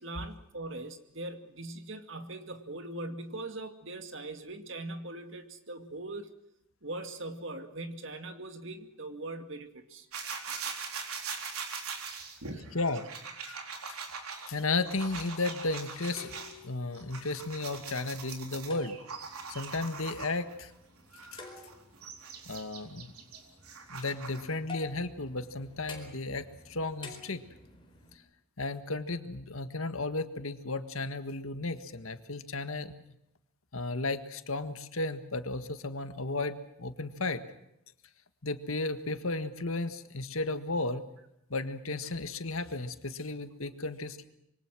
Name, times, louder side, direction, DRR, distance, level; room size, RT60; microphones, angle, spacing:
voice 1, 0.0-6.3 6.8-10.1 12.0-12.7, right 2 dB, 55° right, 7 dB, 2.3 m, -41 dB
sound 1, 10.1-16.5 16.9-20.5 21.1-24.5, right 5 dB, 85° right, 4.0 m, -42 dB
voice 2, 12.7-13.1 13.5-13.6 13.9-14.0 14.5-16.4 16.6-19.0 19.5-20.7 21.3-21.4 22.5-23.1 23.9-27.4 28.6-32.9 33.7-37.4 38.4-41.0 41.5-44.2, left 2 dB, 70° left, 10 dB, 1.7 m, -34 dB
sound 2, 16.0-28.2, left 3 dB, 25° left, 4.4 m, -51 dB
26.5 x 23.5 x 6.2 m, 0.81 s
head